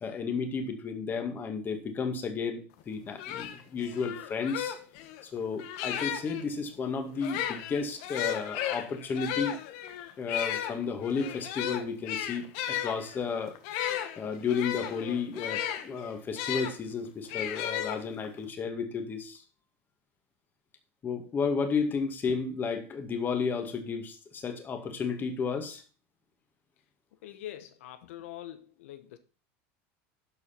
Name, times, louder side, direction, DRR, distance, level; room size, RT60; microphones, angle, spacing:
voice 1, 0.0-4.8 5.2-9.6 10.2-13.6 14.2-19.4 21.0-25.8, left 5 dB, 25° left, 2.1 m, -32 dB
sound 1, 2.8-2.9 3.2-6.4 7.1-16.7 17.3-18.4, left 10 dB, 65° left, 1.5 m, -35 dB
voice 2, 27.2-29.2, left 12 dB, 85° left, 1.1 m, -44 dB
12.0 x 5.0 x 5.9 m
supercardioid pair, 125°, 7 cm